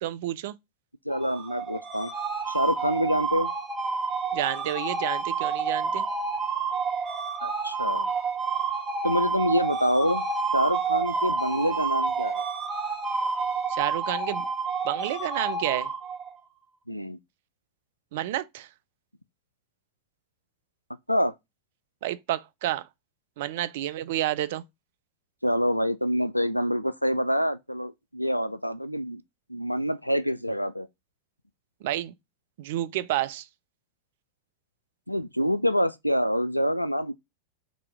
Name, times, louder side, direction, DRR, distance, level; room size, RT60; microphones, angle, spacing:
voice 1, 0.0-0.5 4.3-6.0 13.7-14.5 14.8-15.9 18.1-18.7 22.0-22.9 23.4-24.6 31.8-32.1 32.6-33.5, right 14 dB, 55° right, 0.4 m, -30 dB
voice 2, 1.1-2.1 2.5-3.5 7.4-8.1 9.0-10.3 10.5-12.4 16.9-17.2 21.1-21.3 25.4-29.2 29.5-30.9 35.1-37.1, equal, 90° left, 0.3 m, -26 dB
sound 1, 1.1-16.4, right 4 dB, 15° right, 1.6 m, -29 dB
4.0 x 2.8 x 4.7 m
figure-of-eight pair, 90°, 0 cm